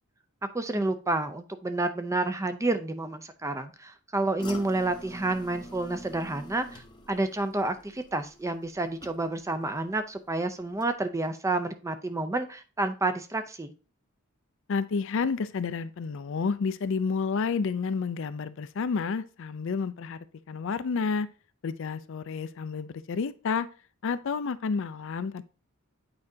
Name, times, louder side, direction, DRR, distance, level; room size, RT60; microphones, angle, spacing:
voice 1, 0.5-13.7, right 2 dB, 15° right, 9 dB, 0.5 m, -30 dB
sound 1, 4.4-9.6 9.9-10.4 10.8-10.9, equal, 20° left, 0.8 m, -46 dB
voice 2, 14.7-20.2 20.5-21.3 21.6-23.7 24.0-25.4, left 5 dB, 65° left, 14 dB, 0.4 m, -30 dB
8.7 x 4.8 x 2.7 m, 0.34 s
head